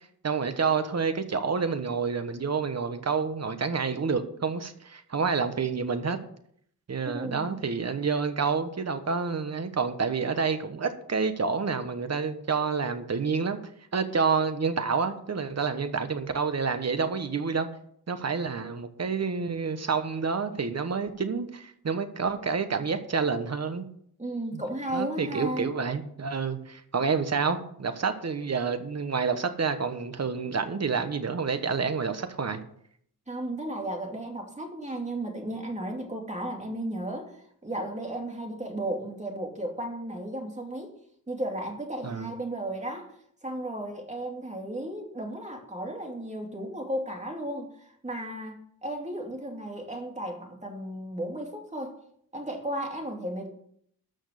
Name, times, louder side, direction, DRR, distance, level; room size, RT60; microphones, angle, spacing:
voice 1, 0.2-6.2 6.9-13.6 13.9-17.7 18.1-23.8 24.5-24.6 24.9-32.6 42.0-42.3, right 5 dB, 45° right, 9 dB, 1.2 m, -28 dB
voice 2, 7.0-7.6 24.2-25.7 33.3-37.3 37.6-41.0 41.3-43.1 43.4-51.9 52.3-53.5, right 1 dB, 20° right, 1 dB, 2.7 m, -34 dB
13.0 x 6.4 x 6.6 m, 0.67 s
wide cardioid pair, 125°, 36 cm